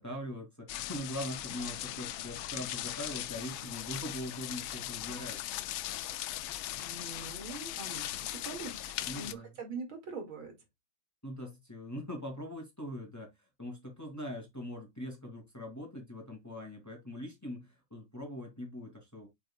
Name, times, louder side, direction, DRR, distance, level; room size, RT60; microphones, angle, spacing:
voice 1, 0.0-5.4 9.1-9.5 11.2-13.3 13.6-19.3, equal, 10° left, 2.3 m, -42 dB
sound 1, 0.7-9.3, left 13 dB, 80° left, 1.4 m, -39 dB
voice 2, 6.8-10.6, right 4 dB, 80° right, 3.0 m, -43 dB
7.6 x 6.2 x 2.3 m
omnidirectional pair, 2.2 m